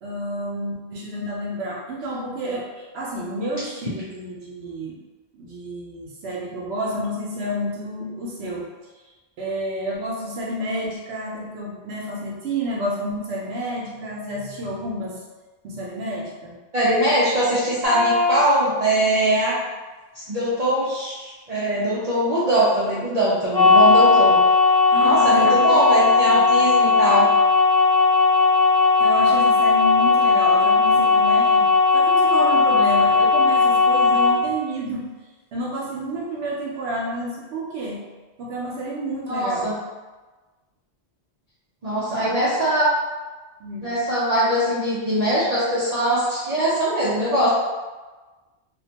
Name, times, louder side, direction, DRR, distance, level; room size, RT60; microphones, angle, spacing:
voice 1, 0.0-5.0 5.3-8.7 9.4-15.2 15.6-16.6 24.9-26.6 29.0-35.1 35.5-38.1 38.4-39.7 42.1-42.3 43.6-43.9, right 1 dB, 75° right, -4 dB, 0.8 m, -30 dB
voice 2, 16.7-19.5 20.1-24.4 25.0-27.3 39.3-39.7 41.8-42.9 43.8-47.5, right 1 dB, 50° right, -9 dB, 0.5 m, -21 dB
sound 1, 17.8-18.4 23.5-34.4, left 4 dB, 35° left, 0.4 m, -17 dB
2.4 x 2.1 x 2.7 m, 1.2 s
omnidirectional pair, 1.1 m